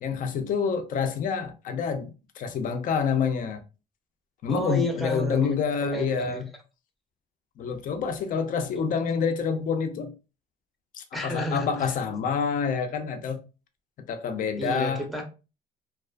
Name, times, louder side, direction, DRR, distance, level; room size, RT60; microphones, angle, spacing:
voice 1, 0.0-2.1 2.4-3.6 4.4-6.4 7.6-10.1 10.9-13.4 14.1-15.0, left 6 dB, 55° left, 0.5 m, -27 dB
voice 2, 4.5-6.4 11.1-11.9 14.6-15.2, equal, ahead, 0.6 m, -31 dB
2.5 x 2.3 x 2.2 m
cardioid pair, 110°, 17 cm